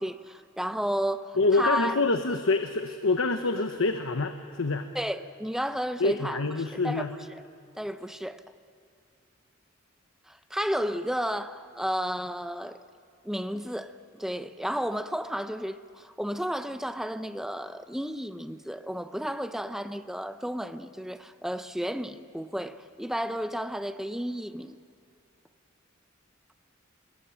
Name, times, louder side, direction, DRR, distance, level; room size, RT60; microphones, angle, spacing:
voice 1, 0.0-2.0 4.9-7.4 7.7-8.4 10.3-12.8 13.2-24.8, equal, ahead, 0.7 m, -32 dB
voice 2, 1.4-4.9 6.0-7.1, left 3 dB, 85° left, 1.1 m, -26 dB
25.5 x 21.0 x 8.9 m
head